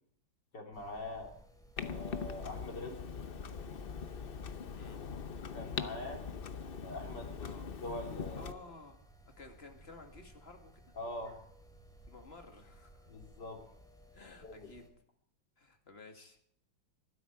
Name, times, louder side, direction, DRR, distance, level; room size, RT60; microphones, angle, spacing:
voice 1, 0.5-1.3 1.8-3.0 5.5-6.3 6.8-8.6 10.9-11.4 13.1-13.6 14.4-14.7, left 1 dB, 60° left, 2 dB, 3.8 m, -43 dB
sound 1, 0.7-14.9, equal, ahead, 2.9 m, -59 dB
Clock, 1.8-8.5, left 6 dB, 75° left, 0.5 m, -42 dB
voice 2, 8.3-9.0 9.4-10.9 12.1-13.1 14.1-14.9 15.6-16.4, left 3 dB, 30° left, 4 dB, 2.4 m, -54 dB
23.5 x 12.5 x 4.7 m, 0.67 s
omnidirectional pair, 2.2 m